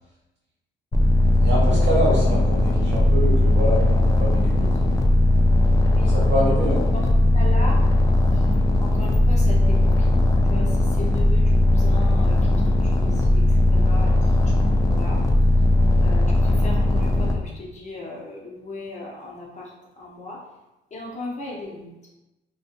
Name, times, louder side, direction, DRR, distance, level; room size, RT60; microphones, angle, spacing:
sound 1, 0.9-17.3, left 1 dB, 15° left, 0.3 m, -18 dB
voice 1, 1.4-4.7 6.0-6.9, right 1 dB, 65° right, -5 dB, 1.2 m, -25 dB
voice 2, 5.9-6.2 6.9-7.0 7.3-7.8 8.3-10.2 10.5-15.2 16.0-20.4 20.9-21.9, left 2 dB, 35° left, -3 dB, 0.7 m, -37 dB
2.5 x 2.3 x 2.5 m, 0.99 s
cardioid pair, 90°, 20 cm